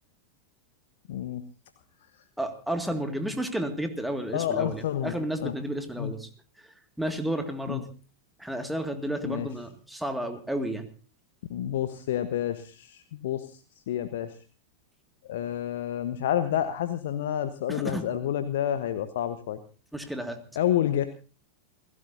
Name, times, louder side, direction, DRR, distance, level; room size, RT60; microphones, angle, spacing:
voice 1, 1.1-1.4 4.3-5.1 5.4-5.5 6.0-6.1 7.7-7.8 9.2-9.5 11.5-14.3 15.2-19.6 20.5-21.0, left 11 dB, 55° left, 10 dB, 1.2 m, -29 dB
voice 2, 2.4-6.3 7.0-7.9 8.4-10.9 17.7-18.1 19.9-20.4, right 1 dB, ahead, 7 dB, 2.0 m, -32 dB
29.0 x 16.0 x 2.7 m, 0.36 s
figure-of-eight pair, 90°, 0 cm